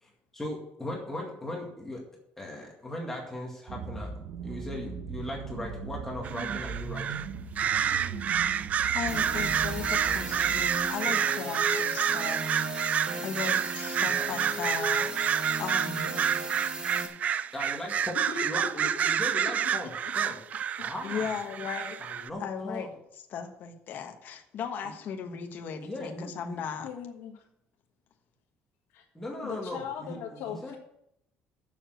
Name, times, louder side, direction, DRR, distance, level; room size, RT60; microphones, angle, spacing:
voice 1, 0.0-2.0 2.4-4.1 4.4-7.3 17.5-18.2 18.4-20.4 20.8-21.3 22.0-22.9 24.8-24.9 25.3-25.4 25.8-26.6 29.1-30.7, left 1 dB, 10° left, -1 dB, 2.0 m, -38 dB
sound 1, 3.7-10.8, right 6 dB, 60° right, 1.1 m, -39 dB
sound 2, 6.2-7.3 7.6-22.3, right 8 dB, 40° right, 0.3 m, -29 dB
voice 2, 8.9-12.6 12.9-15.1 15.6-16.1 21.0-22.0 22.4-22.9 23.3-26.9, left 7 dB, 50° left, 4 dB, 1.2 m, -37 dB
sound 3, 9.1-17.1, right 2 dB, 25° right, 1.4 m, -36 dB
voice 3, 18.1-18.7 18.9-19.1 26.8-27.4 28.9-29.0 29.4-30.7, left 7 dB, 90° left, -2 dB, 1.5 m, -39 dB
7.2 x 6.7 x 7.8 m, 0.76 s
cardioid pair, 155°, 4 cm